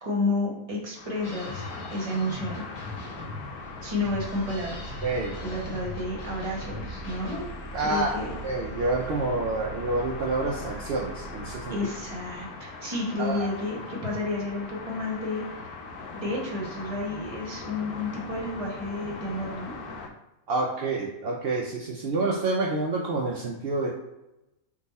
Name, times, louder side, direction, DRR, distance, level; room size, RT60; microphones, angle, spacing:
voice 1, 0.0-1.6 1.9-2.6 3.8-4.9 5.4-7.4 7.8-8.3 11.7-15.4 16.2-19.7, left 2 dB, 25° right, -3 dB, 0.9 m, -31 dB
sound 1, 1.0-20.1, left 3 dB, 85° left, 1.1 m, -41 dB
sound 2, 1.2-7.5, left 2 dB, 35° left, 1.0 m, -41 dB
sound 3, 3.6-12.5, right 3 dB, 70° left, 1.7 m, -42 dB
voice 2, 5.0-5.4 7.7-8.1 8.4-11.8 13.2-13.5 20.5-24.0, right 2 dB, 65° right, -2 dB, 0.6 m, -28 dB
3.6 x 2.7 x 4.0 m, 0.93 s
omnidirectional pair, 1.6 m